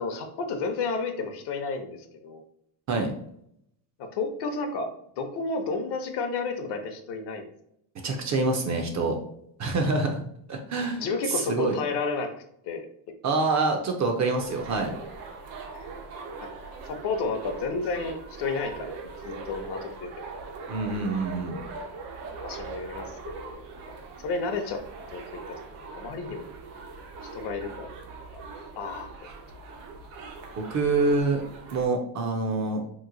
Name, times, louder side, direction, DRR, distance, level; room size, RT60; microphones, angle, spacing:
voice 1, 0.0-2.4 4.0-7.4 11.0-12.3 12.6-12.9 15.7-15.9 16.4-16.5 16.8-20.3 22.4-23.5 24.2-24.8 25.1-25.6 25.9-26.4 27.3-28.1 28.3-28.4 28.7-29.1, left 4 dB, 55° left, 6 dB, 0.7 m, -32 dB
voice 2, 8.0-9.2 9.6-10.2 10.5-11.0 11.3-11.8 13.2-14.9 20.7-21.6 30.6-31.4 31.7-32.8, right 3 dB, 35° right, 4 dB, 0.5 m, -26 dB
sound 1, 14.4-31.9, right 4 dB, 80° right, 0.9 m, -41 dB
3.0 x 2.1 x 3.6 m, 0.71 s
cardioid pair, 125°, 49 cm